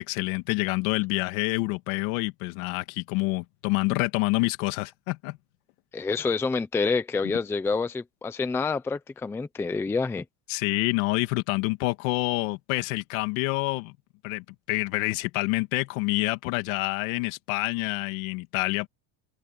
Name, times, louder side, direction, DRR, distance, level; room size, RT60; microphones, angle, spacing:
voice 1, 0.0-5.4 10.5-13.9 14.2-18.9, left 23 dB, 65° left, 2.1 m, -27 dB
voice 2, 5.9-10.3, left 4 dB, 5° left, 0.5 m, -27 dB
cardioid pair, 170°, 44 cm